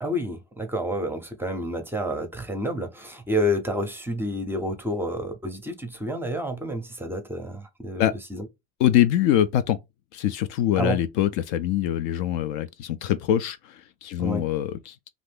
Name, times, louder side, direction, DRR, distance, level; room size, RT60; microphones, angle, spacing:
voice 1, 0.0-8.5 10.8-11.0 14.2-14.4, equal, 5° right, 0.6 m, -29 dB
voice 2, 8.8-9.8 10.1-15.1, left 11 dB, 55° left, 0.4 m, -24 dB
2.5 x 2.4 x 3.4 m
supercardioid pair, 115°, 35 cm